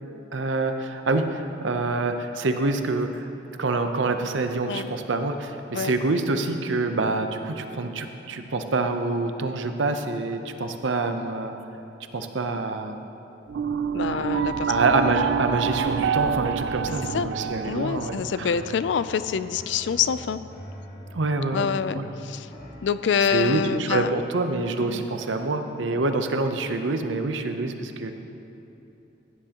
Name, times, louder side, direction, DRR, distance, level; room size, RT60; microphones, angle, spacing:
voice 1, 0.0-3.3 3.6-11.5 12.1-13.0 14.0-14.4 14.7-18.5 21.1-21.7 22.0-22.1 23.3-28.1, right 3 dB, 90° right, 6 dB, 0.7 m, -26 dB
sound 1, 13.5-18.5, right 7 dB, 70° right, 0.3 m, -27 dB
voice 2, 13.9-14.7 15.1-15.3 17.1-17.3 17.6-20.4 21.5-22.5 22.8-24.1 24.8-25.1 25.9-26.0, left 6 dB, 75° left, 13 dB, 0.4 m, -26 dB
sound 2, 16.5-24.6, equal, 50° left, 2.0 m, -45 dB
sound 3, 17.0-23.6, right 1 dB, 20° right, 0.6 m, -46 dB
16.0 x 9.9 x 2.9 m, 3.0 s
head